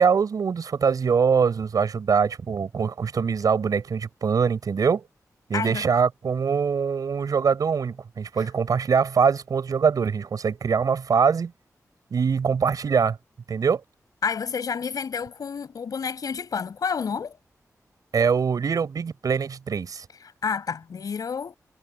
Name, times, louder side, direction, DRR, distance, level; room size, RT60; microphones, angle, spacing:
voice 1, 0.0-5.0 5.5-11.5 12.1-13.2 13.5-13.8 18.1-20.0, right 6 dB, 85° right, 7.7 m, -23 dB
voice 2, 5.5-5.8 14.2-17.4 20.4-21.6, left 6 dB, 90° left, 7.6 m, -29 dB
wide cardioid pair, 155°, 6 cm